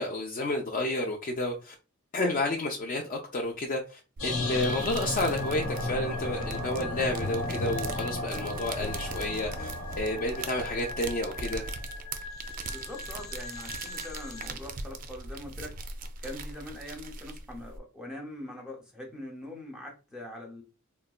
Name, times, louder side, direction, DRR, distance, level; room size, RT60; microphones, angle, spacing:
voice 1, 0.0-1.7 2.1-9.7 10.0-11.7, left 2 dB, 40° left, 0.4 m, -31 dB
sound 1, 4.2-14.5, left 1 dB, 65° left, 1.0 m, -36 dB
sound 2, 4.2-17.8, right 3 dB, 40° right, 0.4 m, -40 dB
sound 3, 7.1-10.2, left 1 dB, 80° left, 1.2 m, -42 dB
voice 2, 12.6-15.8 16.2-20.6, left 1 dB, 5° right, 0.6 m, -42 dB
3.9 x 2.1 x 2.3 m
head